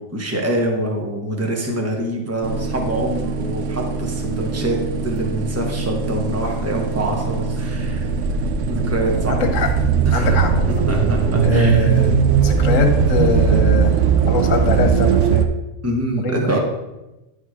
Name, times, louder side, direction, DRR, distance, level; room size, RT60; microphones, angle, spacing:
voice 1, 0.0-4.8 5.0-8.1 8.7-9.4 10.0-10.4 10.7-11.9 15.8-16.6, right 1 dB, 15° right, 0 dB, 1.0 m, -25 dB
sound 1, 2.4-15.5, right 6 dB, 75° right, 0.9 m, -19 dB
voice 2, 9.3-9.7 10.1-10.8 11.4-12.1 12.4-15.5 16.2-16.6, left 4 dB, 80° left, 4 dB, 1.3 m, -22 dB
10.5 x 3.7 x 4.8 m, 1.0 s
omnidirectional pair, 1.3 m